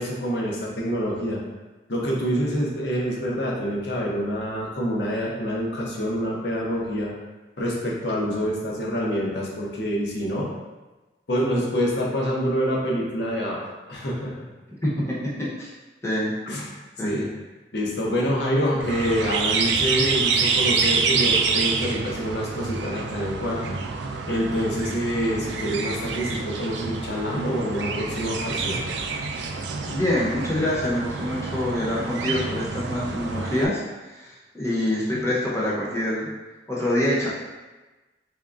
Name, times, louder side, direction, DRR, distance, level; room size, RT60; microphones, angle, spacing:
voice 1, 0.0-1.4 1.9-7.1 7.6-10.5 11.3-13.6 13.9-14.5 16.5-16.7 17.0-17.3 17.7-23.8 24.3-28.8 35.1-35.3, equal, 65° left, -2 dB, 0.8 m, -26 dB
voice 2, 14.8-15.1 15.6-15.7 16.0-16.3 17.0-17.3 29.9-33.8 34.1-36.3 36.7-37.3, left 1 dB, 15° left, -6 dB, 0.8 m, -25 dB
sound 1, 18.8-33.7, right 4 dB, 75° right, 0.4 m, -27 dB
3.6 x 3.5 x 2.5 m, 1.2 s
head